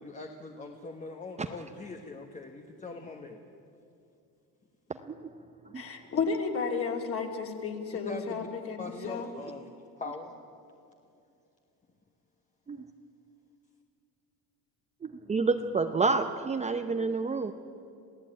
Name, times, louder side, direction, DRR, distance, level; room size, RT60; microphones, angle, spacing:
voice 1, 0.0-3.4 8.0-8.5 8.8-9.6 10.0-10.3, left 3 dB, 20° left, 3 dB, 1.3 m, -41 dB
voice 2, 5.7-9.3, left 5 dB, 35° left, 2 dB, 3.0 m, -33 dB
voice 3, 15.0-17.5, right 4 dB, 20° right, 6 dB, 0.7 m, -28 dB
28.0 x 16.0 x 8.9 m, 2.6 s
cardioid pair, 145°, 37 cm